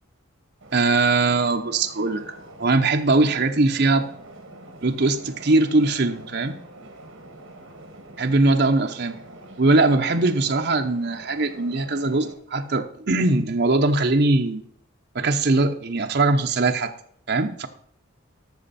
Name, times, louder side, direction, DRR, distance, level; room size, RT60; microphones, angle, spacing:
sound 1, 0.6-12.3, right 2 dB, 65° right, 1.9 m, -45 dB
voice 1, 0.7-2.2 2.6-4.1 4.8-6.6 8.2-9.1 9.6-14.6 15.1-16.9 17.3-17.7, right 2 dB, 50° right, 5 dB, 0.8 m, -21 dB
13.0 x 6.2 x 4.2 m, 0.65 s
head